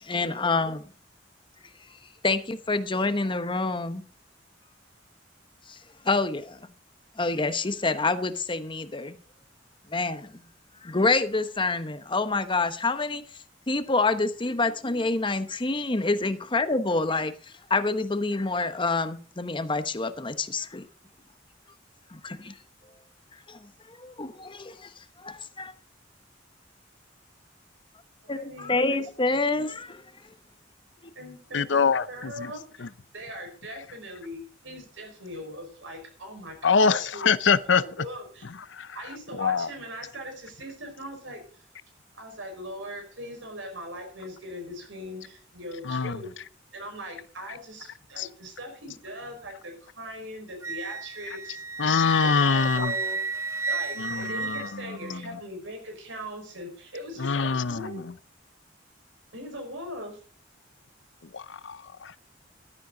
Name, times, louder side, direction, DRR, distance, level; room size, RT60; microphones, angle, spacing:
voice 1, 0.0-0.8 2.2-4.0 5.7-5.8 6.0-6.7 7.2-9.2 9.9-10.4 10.8-13.2 13.7-17.3 17.7-20.9 22.1-22.5 23.5-24.9 25.2-25.7 28.3-30.0, left 3 dB, 25° left, 1.0 m, -27 dB
voice 2, 28.2-29.6 31.1-32.9 33.1-38.4 38.9-41.6 42.1-46.3 46.7-51.6 52.4-53.2 53.6-58.0 59.3-60.2, equal, 90° right, 5.2 m, -40 dB
voice 3, 31.5-32.5 32.8-32.9 36.6-37.8 38.7-39.0 39.4-39.7 45.8-46.2 48.2-48.3 51.8-52.9 54.0-55.2 57.2-58.1 61.3-62.2, left 5 dB, 70° left, 0.7 m, -24 dB
Wind instrument woodwind instrument, 50.6-55.2, right 4 dB, 15° right, 0.6 m, -33 dB
14.5 x 12.5 x 3.9 m
head